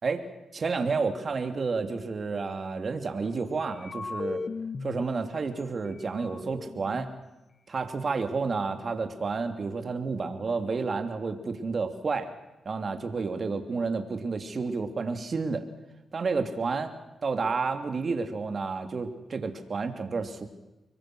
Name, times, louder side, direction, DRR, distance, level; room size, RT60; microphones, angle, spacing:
voice 1, 0.5-4.4 4.8-7.1 7.7-12.3 12.6-15.6 16.1-16.9 17.2-20.5, right 4 dB, 50° right, 8 dB, 2.9 m, -30 dB
sound 1, 3.7-5.0 5.6-5.7 5.9-7.2, left 3 dB, 45° left, 1.3 m, -36 dB
25.5 x 22.5 x 6.3 m, 1.0 s
cardioid pair, 65°, 0 cm